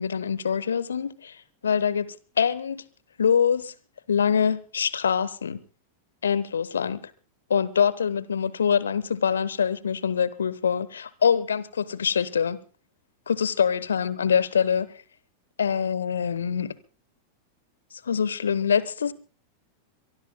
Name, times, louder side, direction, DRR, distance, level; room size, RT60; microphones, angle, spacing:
voice 1, 0.0-1.4 1.6-2.8 3.2-3.7 4.1-5.6 6.2-7.0 7.5-12.6 13.3-14.9 15.6-16.7 18.0-19.1, left 7 dB, 70° left, 0.9 m, -24 dB
23.5 x 23.0 x 2.2 m
figure-of-eight pair, 90°, 0 cm